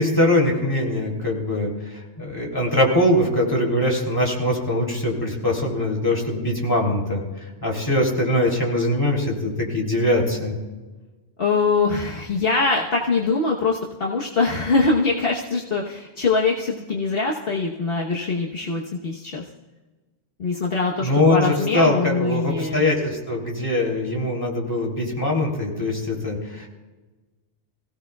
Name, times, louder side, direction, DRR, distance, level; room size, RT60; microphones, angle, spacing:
voice 1, 0.0-1.7 2.2-7.2 7.6-10.6 21.0-26.7, left 1 dB, 20° left, -2 dB, 3.1 m, -22 dB
voice 2, 11.4-19.4 20.4-22.8, left 4 dB, 60° left, -2 dB, 1.4 m, -23 dB
25.0 x 16.5 x 2.3 m, 1.2 s
omnidirectional pair, 1.1 m